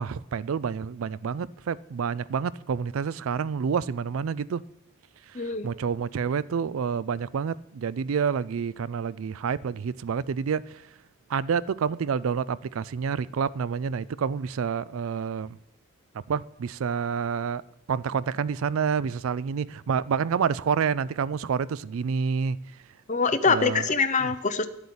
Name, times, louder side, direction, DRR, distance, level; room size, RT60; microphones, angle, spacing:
voice 1, 0.0-4.6 5.6-10.6 11.3-15.6 16.3-17.6 17.9-22.6 23.5-23.8, right 6 dB, 85° right, 0.4 m, -28 dB
voice 2, 5.3-5.7 23.1-24.7, left 4 dB, 35° left, 0.8 m, -24 dB
12.0 x 8.1 x 8.5 m
head